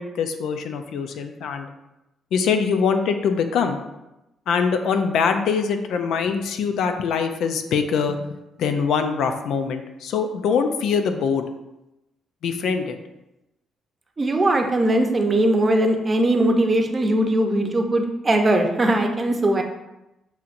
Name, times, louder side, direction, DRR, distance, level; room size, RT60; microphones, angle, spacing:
voice 1, 0.0-1.7 2.3-3.8 4.5-8.2 8.6-11.4 12.4-13.0, left 6 dB, 75° left, 7 dB, 0.5 m, -23 dB
voice 2, 14.2-19.6, right 1 dB, 30° right, 4 dB, 0.7 m, -20 dB
7.2 x 2.9 x 2.6 m, 0.94 s
cardioid pair, 90°, 0 cm